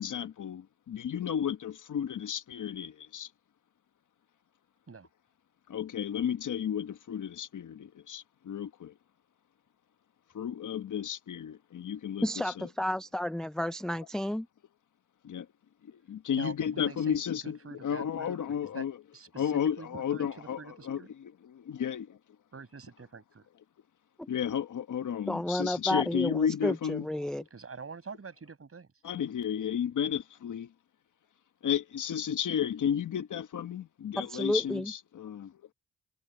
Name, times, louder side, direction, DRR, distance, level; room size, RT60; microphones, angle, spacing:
voice 1, 0.0-3.3 5.7-8.9 10.3-12.7 15.2-15.5 15.8-19.0 19.4-21.3 21.7-22.0 24.3-27.1 29.0-30.7 31.6-35.5, left 8 dB, 80° left, 1.3 m, -33 dB
voice 2, 12.2-14.5 24.2-24.3 25.3-27.4 34.2-34.9, left 1 dB, ahead, 0.4 m, -31 dB
voice 3, 16.4-17.2 17.4-18.9 19.1-19.5 19.8-21.1 22.5-23.4 27.5-28.9, right 5 dB, 50° right, 7.4 m, -46 dB
cardioid pair, 70°, 30 cm